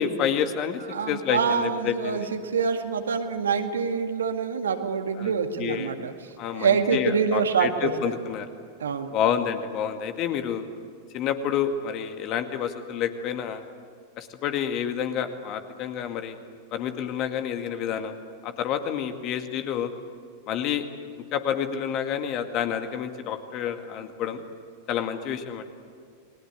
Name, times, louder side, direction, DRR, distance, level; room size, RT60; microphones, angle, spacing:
voice 1, 0.0-2.3 5.2-5.3 5.6-5.9 6.4-8.5 9.1-10.7 11.1-13.6 14.2-16.4 16.7-18.1 18.4-19.9 20.5-20.8 21.3-24.4 24.9-25.6, left 8 dB, 40° left, 7 dB, 2.1 m, -29 dB
voice 2, 0.9-7.9 8.8-9.1, right 6 dB, 70° right, 6 dB, 1.9 m, -26 dB
30.0 x 21.0 x 8.3 m, 2.2 s
figure-of-eight pair, 90°, 0 cm